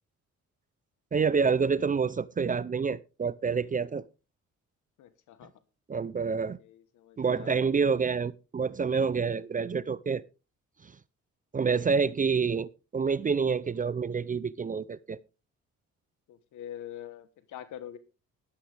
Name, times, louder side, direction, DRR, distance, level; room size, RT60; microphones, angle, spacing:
voice 1, 1.1-4.0 5.9-6.6 7.2-10.2 11.5-15.2, right 5 dB, 25° right, 0.5 m, -27 dB
voice 2, 5.0-5.5 6.4-7.6 16.3-18.0, left 11 dB, 80° left, 1.2 m, -44 dB
13.0 x 12.5 x 3.4 m
cardioid pair, 90°, 30 cm